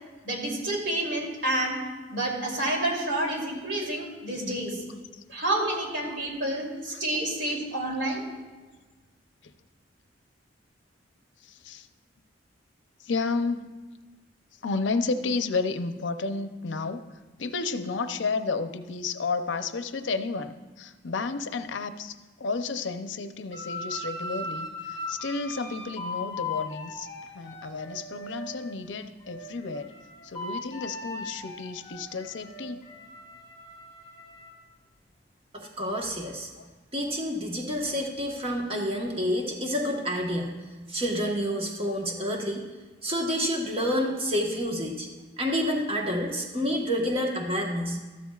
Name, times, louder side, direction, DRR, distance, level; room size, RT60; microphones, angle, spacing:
voice 1, 0.2-1.8 2.1-4.8 5.3-8.2, right 1 dB, 75° right, -2 dB, 2.9 m, -29 dB
voice 2, 11.4-11.9 13.0-13.7 14.6-17.0 17.4-29.9 30.2-32.8 36.6-36.7 46.6-46.7, left 4 dB, 75° left, 9 dB, 0.6 m, -32 dB
sound 1, 23.5-28.8 29.2-34.5, left 2 dB, 25° left, 3.6 m, -38 dB
voice 3, 35.5-36.5 36.9-40.5 40.9-42.6 43.0-45.1 45.4-48.0, equal, 30° right, 0 dB, 1.2 m, -28 dB
13.5 x 12.5 x 2.4 m, 1.3 s
head